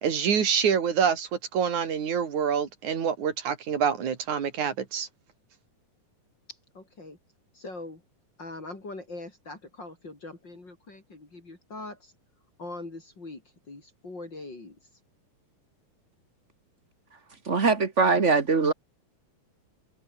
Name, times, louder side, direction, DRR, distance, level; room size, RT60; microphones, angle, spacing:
voice 1, 0.0-5.1, right 7 dB, 65° right, 4.3 m, -26 dB
voice 2, 6.5-7.2 7.5-8.0 8.4-12.1 12.6-13.4 13.7-14.8, left 2 dB, 35° left, 4.6 m, -42 dB
voice 3, 17.5-18.7, right 4 dB, 35° right, 1.1 m, -22 dB
omnidirectional pair, 3.7 m